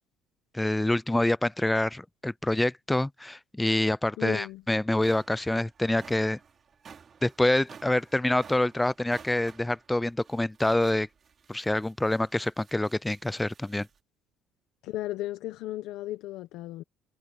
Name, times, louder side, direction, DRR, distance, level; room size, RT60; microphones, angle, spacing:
voice 1, 0.5-6.4 7.2-11.1 11.5-13.9, left 1 dB, 5° left, 0.3 m, -26 dB
voice 2, 4.2-4.6 14.8-16.8, left 15 dB, 70° left, 0.9 m, -35 dB
sound 1, 4.2-4.3 4.8-14.0, right 6 dB, 30° right, 3.6 m, -53 dB
cardioid pair, 140°, 0 cm